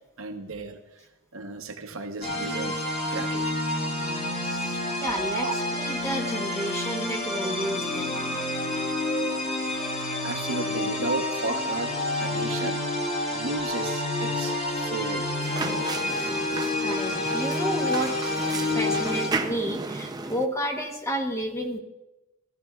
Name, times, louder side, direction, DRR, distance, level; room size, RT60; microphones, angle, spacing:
voice 1, 0.2-0.8 1.3-3.8 5.4-5.5 10.2-11.9 12.2-12.8 13.3-15.3 18.9-19.1, right 2 dB, 65° right, 4 dB, 0.9 m, -34 dB
sound 1, 2.2-19.3, left 2 dB, 35° left, 3.0 m, -28 dB
voice 2, 4.5-8.2 16.2-16.3 16.8-21.8, equal, 15° left, 3 dB, 1.0 m, -31 dB
sound 2, 15.4-20.5, right 3 dB, 20° right, 0.5 m, -34 dB
15.5 x 14.5 x 2.3 m, 1.0 s
head